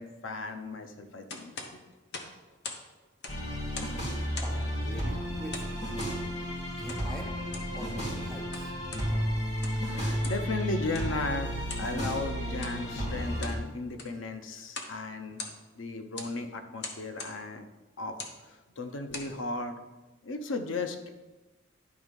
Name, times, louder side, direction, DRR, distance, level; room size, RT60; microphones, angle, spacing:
voice 1, 0.0-1.8 2.1-2.2 9.9-15.4 15.8-17.7 18.0-18.2 18.5-19.8 20.2-21.1, left 3 dB, 80° left, 7 dB, 0.7 m, -36 dB
sound 1, 1.3-2.9 3.1-4.0 4.3-4.7 5.5-6.2 6.9-7.1 7.4-7.7 8.3-9.1 9.5-9.9 10.2-10.5 10.9-11.1 11.7-11.9 12.5-12.8 13.2-13.6 13.9-14.2 14.7-15.0 15.2-15.8 16.2-16.3 16.8-17.4 18.1-18.4 18.9-19.3, left 3 dB, 55° left, 0.9 m, -41 dB
sound 2, 3.3-13.6, equal, 35° left, 1.8 m, -33 dB
voice 2, 4.4-5.8 6.7-7.3 7.7-8.8, equal, 5° left, 0 dB, 0.9 m, -42 dB
10.5 x 3.5 x 5.2 m, 1.1 s
head